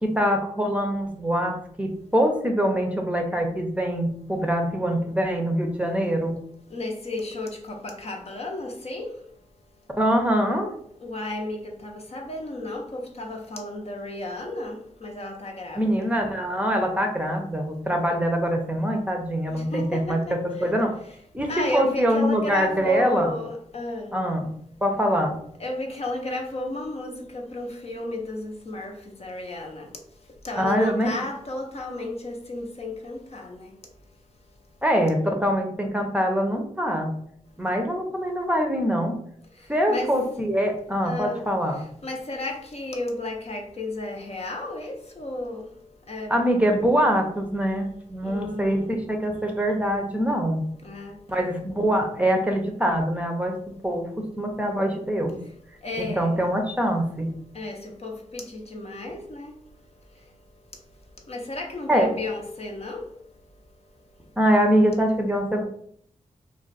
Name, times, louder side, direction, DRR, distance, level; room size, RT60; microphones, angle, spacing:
voice 1, 0.0-6.4 10.0-10.7 15.8-20.2 20.6-21.0 21.3-23.3 24.1-24.5 24.8-25.3 30.6-31.1 34.8-37.1 37.6-39.2 39.7-41.8 46.3-50.6 51.3-55.4 56.0-57.3 61.9-62.1 64.4-65.6, equal, 10° right, 0.7 m, -24 dB
voice 2, 6.7-9.1 11.0-16.2 19.5-20.6 21.5-24.1 25.6-28.9 29.2-29.9 30.4-33.7 39.9-40.1 41.0-41.4 42.0-45.6 46.1-46.4 48.2-48.9 50.8-51.5 55.8-56.4 57.5-59.5 61.3-63.1, left 1 dB, 45° left, 0.7 m, -33 dB
2.4 x 2.2 x 4.0 m
cardioid pair, 55°, 14 cm